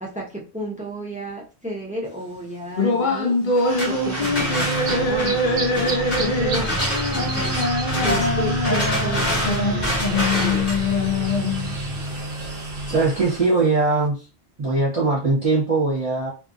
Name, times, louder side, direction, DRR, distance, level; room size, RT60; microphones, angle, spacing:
voice 1, 0.0-3.4 3.8-7.6 8.0-10.7, right 1 dB, 10° right, -2 dB, 0.6 m, -33 dB
sound 1, 2.8-11.7, left 2 dB, 45° left, 0.7 m, -23 dB
sound 2, 3.5-13.3, equal, 65° left, 1.4 m, -29 dB
sound 3, 3.6-13.5, right 2 dB, 55° right, 0.9 m, -29 dB
voice 2, 12.9-14.2 14.6-16.3, right 3 dB, 30° right, -6 dB, 1.1 m, -20 dB
2.7 x 2.5 x 2.6 m, 0.34 s
omnidirectional pair, 1.2 m